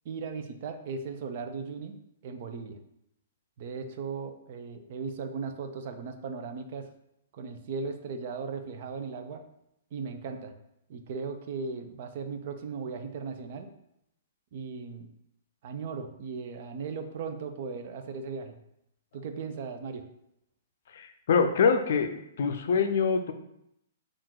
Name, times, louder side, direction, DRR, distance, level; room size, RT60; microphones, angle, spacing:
voice 1, 0.0-2.0 2.2-2.8 3.6-6.9 7.3-9.4 9.9-10.5 10.9-13.7 14.5-15.1 15.6-18.6 19.1-20.1, right 5 dB, 55° right, 7 dB, 0.5 m, -37 dB
voice 2, 20.9-23.3, left 5 dB, 60° left, 7 dB, 0.4 m, -25 dB
3.6 x 2.5 x 4.6 m, 0.79 s
hypercardioid pair, 120°, 0 cm